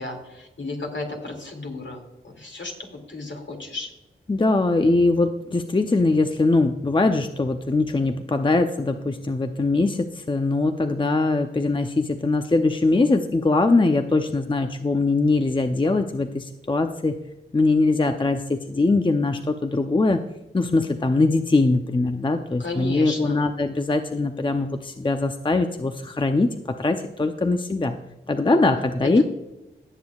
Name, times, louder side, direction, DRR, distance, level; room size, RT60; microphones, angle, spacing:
voice 1, 0.0-3.9 22.6-23.4 29.0-29.2, left 2 dB, 60° left, 2 dB, 2.5 m, -34 dB
voice 2, 4.3-17.2 17.5-20.2 20.5-28.0 28.3-29.2, left 3 dB, 25° left, 7 dB, 0.6 m, -22 dB
16.5 x 7.0 x 2.4 m, 0.97 s
cardioid pair, 55°, 21 cm